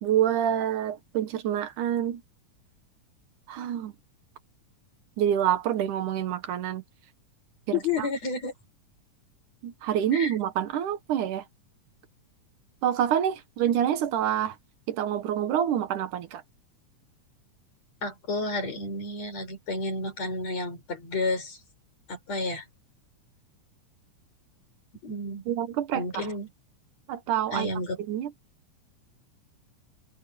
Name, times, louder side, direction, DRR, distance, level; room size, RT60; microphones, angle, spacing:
voice 1, 0.0-2.2 3.5-3.9 5.2-6.8 7.7-8.1 9.6-11.4 12.8-14.6 14.9-16.4 25.5-26.3 27.1-27.7 28.1-28.3, right 10 dB, 85° right, 2.8 m, -27 dB
voice 2, 7.7-8.5 10.1-10.3 18.0-21.6 22.1-22.7 25.0-25.5 25.9-26.5 27.5-28.0, left 3 dB, 60° left, 6.9 m, -31 dB
omnidirectional pair, 3.5 m